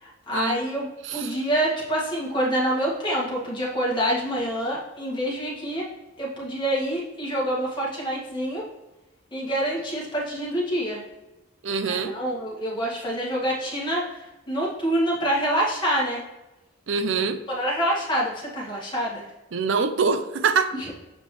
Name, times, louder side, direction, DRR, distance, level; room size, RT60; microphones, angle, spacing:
voice 1, 0.0-5.9 6.2-8.6 9.3-11.0 11.9-16.2 17.5-19.2, equal, 25° left, -5 dB, 2.0 m, -26 dB
voice 2, 1.0-1.4 11.6-12.2 16.9-17.4 19.5-20.7, right 5 dB, 70° right, 10 dB, 0.5 m, -24 dB
7.4 x 5.0 x 3.3 m, 1.0 s
head